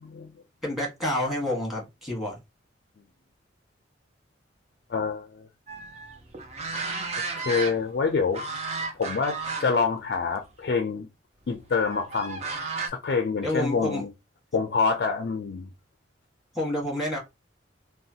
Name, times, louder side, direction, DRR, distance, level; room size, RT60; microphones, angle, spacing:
voice 1, 0.6-2.4 13.4-14.0 16.5-17.2, left 1 dB, ahead, 1.3 m, -28 dB
voice 2, 4.9-5.5 7.4-8.4 9.0-11.1 11.5-12.4 12.9-14.1 14.5-15.7, left 5 dB, 55° left, 0.4 m, -26 dB
sound 1, 5.7-8.0 8.3-9.9 10.3-10.4 11.7-12.9, right 3 dB, 35° right, 0.5 m, -33 dB
3.1 x 2.2 x 2.7 m
head